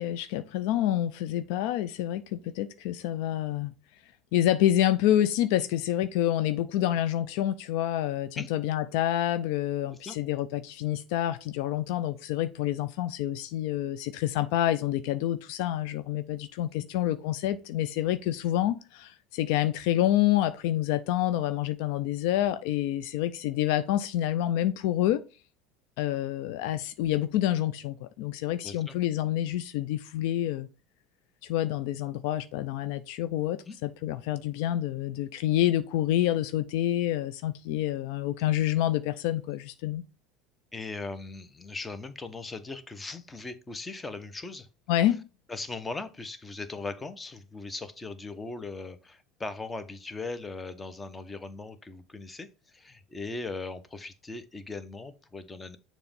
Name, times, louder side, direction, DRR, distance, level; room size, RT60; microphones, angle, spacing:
voice 1, 0.0-3.7 4.3-25.2 26.0-30.7 31.4-40.0 44.9-45.3, left 12 dB, 65° left, 0.4 m, -28 dB
voice 2, 28.6-28.9 33.7-33.8 40.7-44.7 45.5-55.8, left 3 dB, 20° left, 0.9 m, -39 dB
6.9 x 3.0 x 5.1 m
hypercardioid pair, 80°, 0 cm